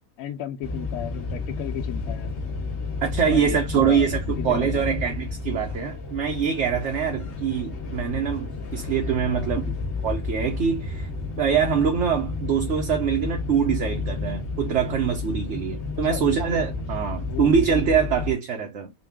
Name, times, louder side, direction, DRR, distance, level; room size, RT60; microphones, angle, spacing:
voice 1, 0.2-2.3 3.2-4.1 4.4-5.0 9.3-9.5 16.1-16.2 17.3-17.5, left 11 dB, 90° left, 1.1 m, -34 dB
sound 1, 0.6-18.3, left 3 dB, 55° left, 1.2 m, -31 dB
voice 2, 3.0-9.6 10.0-11.1 11.4-18.9, right 7 dB, 60° right, 1.0 m, -24 dB
4.0 x 2.4 x 3.4 m
omnidirectional pair, 1.5 m